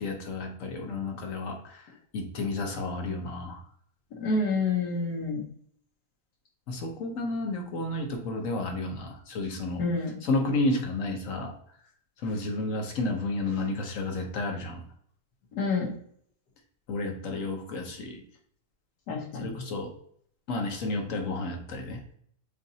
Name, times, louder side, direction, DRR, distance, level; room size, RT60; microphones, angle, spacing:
voice 1, 0.0-3.6 6.7-9.8 10.2-11.5 12.2-14.8 16.9-18.2 19.4-19.9 20.5-22.2, left 2 dB, 55° left, 2 dB, 1.1 m, -31 dB
voice 2, 4.2-5.4 9.8-10.2 15.5-15.9 19.1-19.5, left 3 dB, 75° left, 0 dB, 1.6 m, -28 dB
7.0 x 2.5 x 2.8 m, 0.64 s
omnidirectional pair, 1.8 m